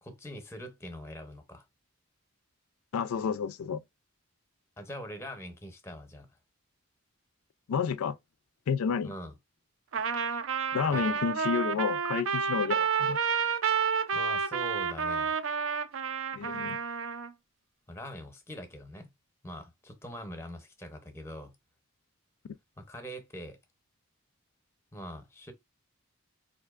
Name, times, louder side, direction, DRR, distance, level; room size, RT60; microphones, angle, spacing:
voice 1, 0.0-1.6 4.8-6.3 9.0-9.3 10.9-11.0 14.1-15.4 17.9-19.1 19.4-21.6 22.8-23.6 24.9-25.5, equal, 10° left, 0.7 m, -43 dB
voice 2, 2.9-3.8 7.7-8.2 8.7-9.1 10.7-13.2 16.3-16.8, left 6 dB, 90° left, 0.4 m, -30 dB
Trumpet, 9.9-17.3, right 6 dB, 65° right, 0.4 m, -30 dB
4.3 x 2.7 x 2.4 m
head